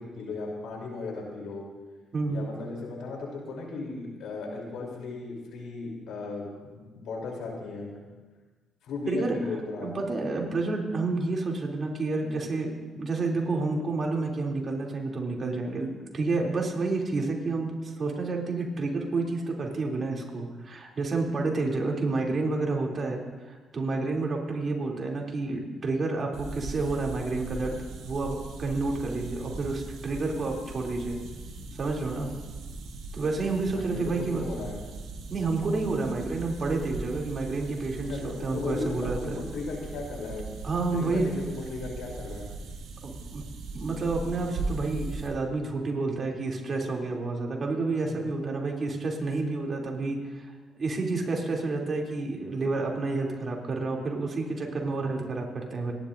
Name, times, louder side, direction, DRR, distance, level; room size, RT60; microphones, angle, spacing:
voice 1, 0.0-1.6 2.3-8.0 8.8-9.9 33.7-34.8 38.0-42.4 48.2-48.3, left 3 dB, 80° left, -1 dB, 3.3 m, -36 dB
voice 2, 9.1-9.4 9.8-12.7 13.0-27.8 28.0-31.2 31.7-32.3 33.1-34.4 35.3-39.4 40.6-41.3 43.0-43.4 43.7-55.9, right 3 dB, 45° right, -1 dB, 2.9 m, -30 dB
sound 1, 26.3-45.3, right 3 dB, 80° right, 2.5 m, -39 dB
26.5 x 11.0 x 2.6 m, 1.3 s
supercardioid pair, 65°, 0 cm